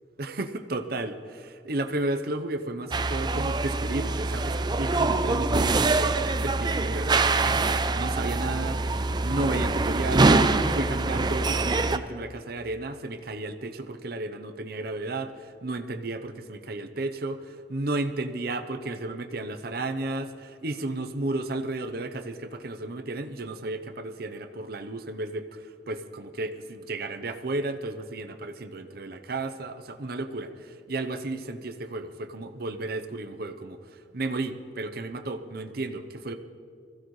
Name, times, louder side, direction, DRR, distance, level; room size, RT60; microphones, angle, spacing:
voice 1, 0.2-6.1 6.4-8.9 9.2-17.4 17.7-36.3, right 2 dB, 60° right, 8 dB, 0.8 m, -33 dB
sound 1, 2.9-12.0, right 3 dB, 25° right, 0.5 m, -24 dB
21.5 x 15.5 x 3.2 m, 2.4 s
head